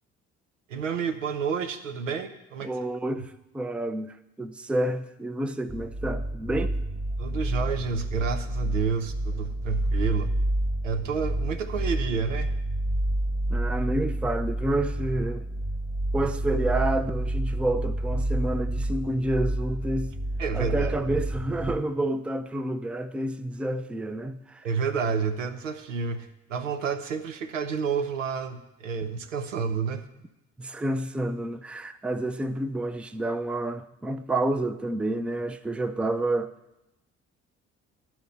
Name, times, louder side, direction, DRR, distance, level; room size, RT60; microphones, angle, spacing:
voice 1, 0.7-2.7 7.2-10.3 10.8-12.6 20.4-20.9 24.6-30.0, right 6 dB, 80° right, 0.7 m, -30 dB
voice 2, 2.6-6.8 13.5-15.5 16.1-20.1 20.5-24.7 30.6-36.5, right 1 dB, 5° right, 0.5 m, -29 dB
sound 1, 5.7-21.8, right 1 dB, 20° right, 1.3 m, -29 dB
12.0 x 4.4 x 8.2 m
figure-of-eight pair, 45°, 37 cm